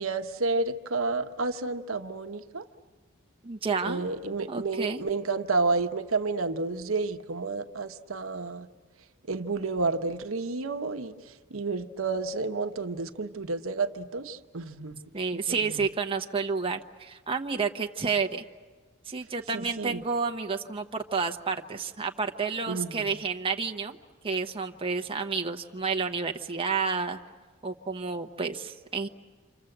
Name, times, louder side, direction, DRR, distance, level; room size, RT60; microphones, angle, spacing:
voice 1, 0.0-2.6 3.8-8.7 9.3-11.1 11.5-15.0 15.5-15.9 19.5-20.0 22.7-23.1, right 3 dB, 75° right, 8 dB, 1.0 m, -30 dB
voice 2, 3.4-4.0 4.5-5.0 15.1-18.4 19.1-24.0 24.2-27.2 27.6-29.1, right 5 dB, 25° right, 4 dB, 0.9 m, -30 dB
28.0 x 26.5 x 7.9 m, 1.4 s
head